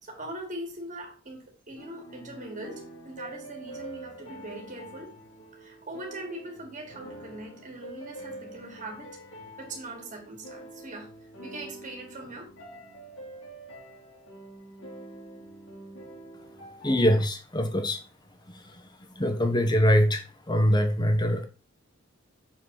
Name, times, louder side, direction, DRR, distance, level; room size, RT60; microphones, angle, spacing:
voice 1, 0.0-5.1 5.5-11.1 11.4-12.5, right 1 dB, 40° right, 2.6 m, -41 dB
sound 1, 1.8-17.2, right 1 dB, 80° left, 3.6 m, -45 dB
voice 2, 16.8-18.0 18.5-18.8 19.1-21.5, equal, 20° left, 1.3 m, -24 dB
7.3 x 4.7 x 4.1 m
head